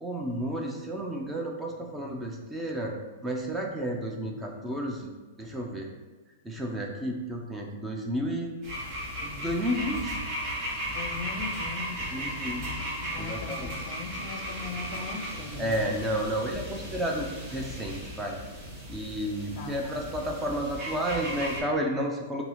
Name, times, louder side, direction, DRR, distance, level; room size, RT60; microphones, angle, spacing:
voice 1, 0.0-2.9 3.2-5.9 6.4-8.5 9.2-10.2 12.1-12.6 13.2-13.7 15.6-18.4 18.9-22.4, equal, 10° right, 1 dB, 0.4 m, -31 dB
sound 1, 8.6-21.6, equal, 35° right, 1.1 m, -36 dB
voice 2, 10.9-15.9 19.6-19.9, left 4 dB, 45° left, 3 dB, 0.5 m, -40 dB
2.7 x 2.7 x 4.1 m, 1.2 s
hypercardioid pair, 140°, 0 cm